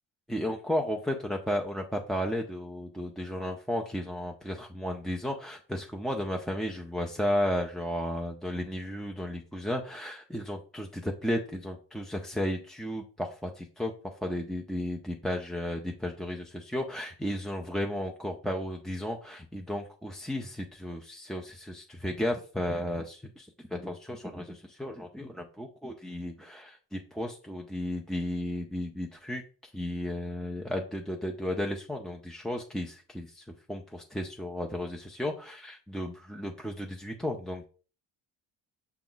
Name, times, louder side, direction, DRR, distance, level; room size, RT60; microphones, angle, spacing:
voice 1, 0.3-37.6, left 1 dB, ahead, 1 dB, 0.3 m, -34 dB
5.9 x 2.3 x 3.8 m, 0.39 s
cardioid pair, 90°, 45 cm